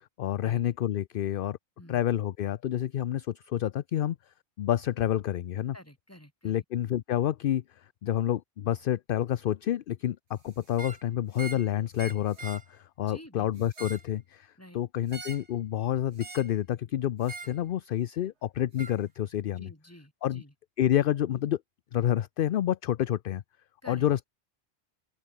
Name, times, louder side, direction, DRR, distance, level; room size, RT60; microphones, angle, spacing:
voice 1, 0.0-1.6 1.9-4.2 4.6-5.7 6.4-19.7 20.2-20.4 20.8-21.6 21.9-23.4 23.9-24.2, left 11 dB, 60° left, 0.7 m, -29 dB
voice 2, 5.7-6.6 13.0-13.7 14.6-14.8 19.5-20.5 23.8-24.1, equal, 15° left, 6.6 m, -50 dB
sound 1, 10.7-11.0 11.3-11.7 12.0-12.7 13.6-14.1 15.1-15.5 16.2-16.6 17.2-17.6 18.8-19.0, right 4 dB, 85° right, 2.7 m, -43 dB
open air
omnidirectional pair, 1.1 m